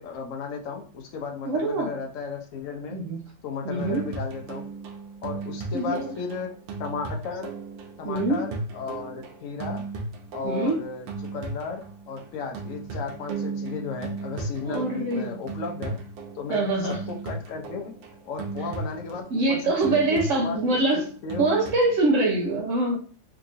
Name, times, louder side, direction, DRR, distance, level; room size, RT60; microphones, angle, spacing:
voice 1, 0.0-3.0 3.4-4.7 5.2-6.5 6.8-7.5 8.0-9.8 10.3-11.1 11.3-16.0 16.4-16.6 17.1-17.9 18.2-21.5, left 5 dB, 70° left, 2 dB, 0.7 m, -34 dB
voice 2, 1.5-1.9 2.9-3.3 3.6-4.1 5.7-6.1 8.0-8.4 10.4-10.8 14.7-15.3 16.5-17.0 19.3-21.1 21.4-23.0, right 2 dB, 65° right, 0 dB, 0.8 m, -24 dB
sound 1, 3.8-22.0, right 3 dB, 80° right, 1.4 m, -36 dB
3.6 x 2.8 x 2.5 m, 0.41 s
omnidirectional pair, 2.0 m